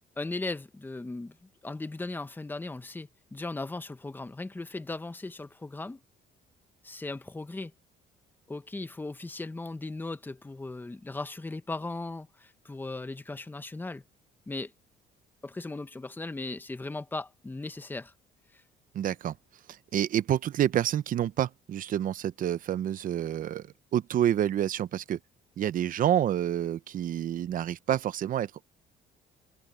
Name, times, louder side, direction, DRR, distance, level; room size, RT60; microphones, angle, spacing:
voice 1, 0.2-6.0 6.8-7.7 8.5-14.0 14.5-14.7 15.4-18.1 18.5-18.6, left 2 dB, 10° left, 1.1 m, -37 dB
voice 2, 18.9-19.3 19.9-23.7 23.9-25.2 25.6-28.7, right 11 dB, 55° right, 0.9 m, -28 dB
cardioid pair, 110°, 17 cm